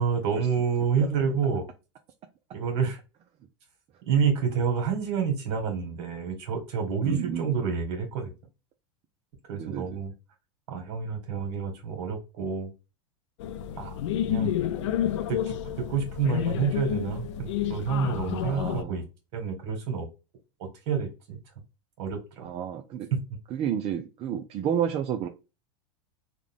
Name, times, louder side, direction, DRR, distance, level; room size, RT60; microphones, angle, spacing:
voice 1, 0.0-1.6 2.5-3.0 4.0-8.3 9.5-10.1 10.7-12.7 13.8-13.9 14.2-14.5 15.3-15.6 15.9-19.0 19.3-20.1 20.6-21.4 22.0-22.5 23.1-23.2, right 6 dB, 60° right, 1.6 m, -28 dB
voice 2, 7.0-7.5 9.5-10.0 14.4-14.9 18.4-19.0 22.4-23.1 23.5-25.3, right 9 dB, 40° right, 0.5 m, -31 dB
sound 1, 13.4-18.8, left 11 dB, 75° left, 0.4 m, -30 dB
3.5 x 2.3 x 3.6 m
supercardioid pair, 115°, 15 cm